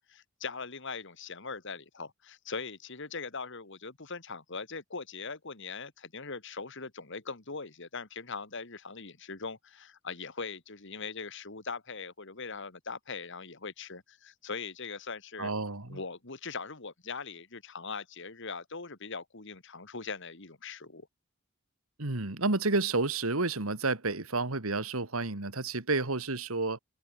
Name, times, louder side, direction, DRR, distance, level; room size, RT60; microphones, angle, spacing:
voice 1, 0.0-15.5 15.9-21.1, left 4 dB, 60° left, 2.3 m, -41 dB
voice 2, 15.4-16.0 22.0-26.8, right 3 dB, 85° right, 2.4 m, -30 dB
head